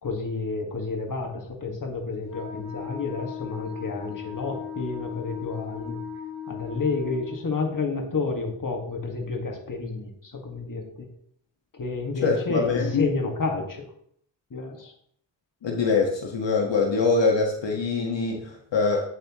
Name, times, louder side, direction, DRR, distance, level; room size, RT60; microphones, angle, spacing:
voice 1, 0.0-6.0 6.5-11.1 11.7-13.9 14.5-14.9, left 3 dB, 40° left, 2 dB, 1.9 m, -30 dB
Wind instrument woodwind instrument, 2.3-7.4, left 8 dB, 80° left, 2.4 m, -37 dB
voice 2, 12.2-13.1 15.6-19.0, left 4 dB, 65° left, 1 dB, 1.7 m, -24 dB
8.3 x 7.7 x 3.0 m, 0.65 s
cardioid pair, 65°, 48 cm